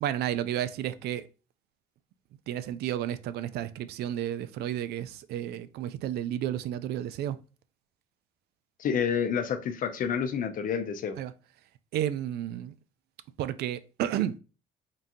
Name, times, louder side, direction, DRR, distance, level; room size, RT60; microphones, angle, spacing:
voice 1, 0.0-1.3 2.5-7.4 11.2-11.3 11.9-12.7 13.4-14.4, right 11 dB, 70° right, 0.4 m, -32 dB
voice 2, 8.8-11.2, left 7 dB, 55° left, 0.7 m, -29 dB
3.7 x 2.7 x 3.6 m
cardioid pair, 110°, 17 cm